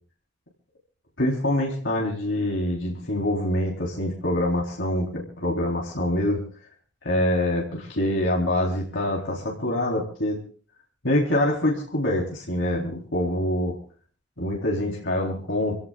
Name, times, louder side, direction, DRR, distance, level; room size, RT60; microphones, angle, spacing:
voice 1, 1.2-6.4 7.0-10.4 11.0-13.8 14.4-15.8, left 1 dB, 80° left, -2 dB, 3.8 m, -25 dB
27.0 x 17.0 x 2.4 m, 0.43 s
head